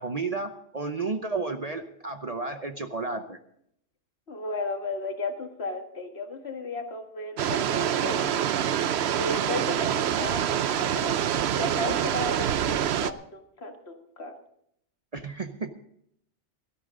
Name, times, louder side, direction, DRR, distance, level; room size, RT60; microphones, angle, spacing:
voice 1, 0.0-3.4 15.1-15.7, right 3 dB, 35° right, 7 dB, 0.8 m, -32 dB
voice 2, 4.3-8.5 9.1-11.2 11.6-14.3, left 2 dB, 60° left, 4 dB, 2.0 m, -34 dB
sound 1, 7.4-13.1, right 9 dB, 65° right, 0.9 m, -26 dB
17.5 x 13.0 x 3.8 m, 0.71 s
omnidirectional pair, 1.2 m